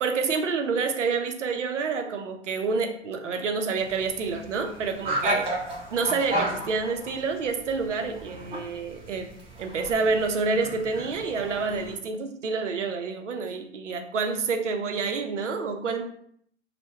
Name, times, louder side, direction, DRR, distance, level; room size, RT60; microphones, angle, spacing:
voice 1, 0.0-5.5 5.9-9.3 9.6-16.0, right 4 dB, 90° right, 5 dB, 0.5 m, -28 dB
sound 1, 3.8-11.9, right 1 dB, 15° right, 0.6 m, -34 dB
2.2 x 2.1 x 2.9 m, 0.65 s
hypercardioid pair, 110°, 35 cm